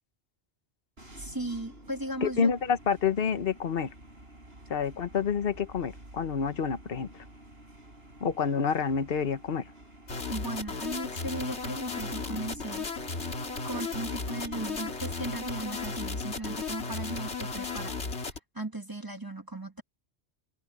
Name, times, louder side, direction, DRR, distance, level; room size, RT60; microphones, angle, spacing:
sound 1, 1.0-18.4, right 1 dB, 65° right, 6.3 m, -50 dB
voice 1, 1.2-2.5 10.3-12.8 13.6-19.8, right 1 dB, 20° right, 1.3 m, -37 dB
voice 2, 2.2-3.9 4.7-7.1 8.2-9.7, left 6 dB, 60° left, 1.2 m, -28 dB
sound 2, 10.1-18.4, left 4 dB, 85° left, 2.5 m, -35 dB
omnidirectional pair, 1.1 m